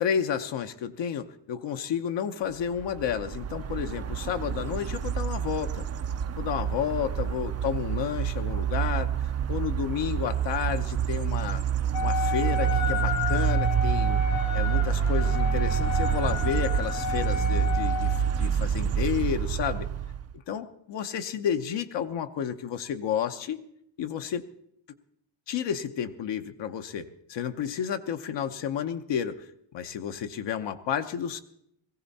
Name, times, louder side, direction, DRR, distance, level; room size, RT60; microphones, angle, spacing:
voice 1, 0.0-5.9 6.4-9.1 9.5-11.6 12.0-14.2 14.5-19.9 20.5-23.6 24.0-24.5 25.5-31.4, left 8 dB, 65° left, 8 dB, 1.0 m, -31 dB
sound 1, 2.7-20.3, right 8 dB, 35° right, 0.5 m, -27 dB
Wind instrument woodwind instrument, 11.9-18.4, left 6 dB, 80° left, 2.0 m, -32 dB
18.0 x 15.5 x 4.2 m, 0.75 s
cardioid pair, 110°, 46 cm